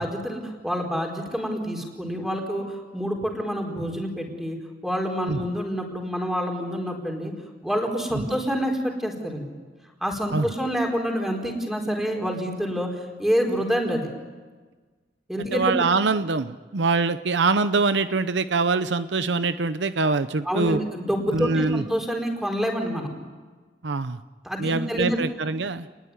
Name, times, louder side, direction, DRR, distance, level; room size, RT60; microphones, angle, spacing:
voice 1, 0.0-4.6 4.8-7.3 7.6-9.5 10.0-14.1 15.3-15.7 20.4-23.1 24.4-25.2, equal, ahead, 2 dB, 4.5 m, -27 dB
voice 2, 15.5-20.8 21.3-21.8 23.8-24.2 24.6-25.9, right 3 dB, 75° right, 12 dB, 0.8 m, -24 dB
29.5 x 20.5 x 9.7 m, 1.4 s
head